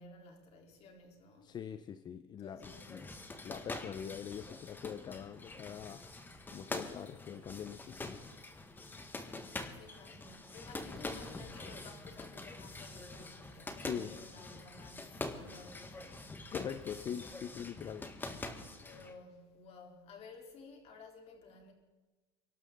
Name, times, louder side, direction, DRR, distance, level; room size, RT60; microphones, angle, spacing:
voice 1, 0.0-1.6 2.4-3.0 8.8-16.7 18.6-21.7, left 3 dB, 45° left, 3.9 m, -55 dB
voice 2, 1.4-3.1 3.4-6.1 6.5-8.2 13.8-14.2 16.5-18.6, left 8 dB, 30° left, 0.6 m, -43 dB
sound 1, 2.6-19.1, left 2 dB, 15° left, 1.6 m, -45 dB
24.0 x 12.0 x 3.9 m
supercardioid pair, 125°, 14 cm